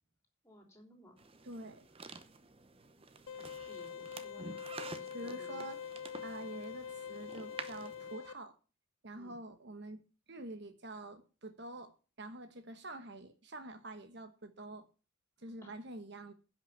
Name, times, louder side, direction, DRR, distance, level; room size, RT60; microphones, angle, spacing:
voice 1, 0.4-1.3 3.7-4.6 4.9-5.6 9.2-9.4 15.6-15.8, equal, 15° left, 3.3 m, -57 dB
sound 1, 1.2-8.1, right 4 dB, 25° right, 0.7 m, -50 dB
voice 2, 1.4-1.9 5.1-5.8 6.2-8.6 9.0-10.0 10.3-14.9 15.4-16.3, right 2 dB, 55° right, 1.1 m, -47 dB
sound 2, 3.3-8.3, left 7 dB, 75° left, 0.8 m, -44 dB
10.5 x 6.1 x 7.2 m
head